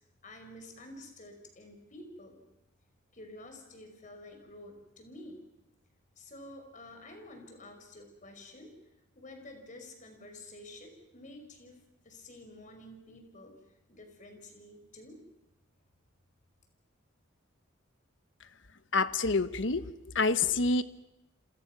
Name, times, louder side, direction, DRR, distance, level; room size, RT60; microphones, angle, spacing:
voice 1, 0.2-2.4 3.1-5.5 6.2-8.7 9.2-11.8 12.0-13.6 13.9-15.2, left 1 dB, 40° left, 5 dB, 5.5 m, -50 dB
voice 2, 18.9-20.8, left 3 dB, 70° left, 13 dB, 1.1 m, -27 dB
29.0 x 27.0 x 6.1 m, 0.90 s
head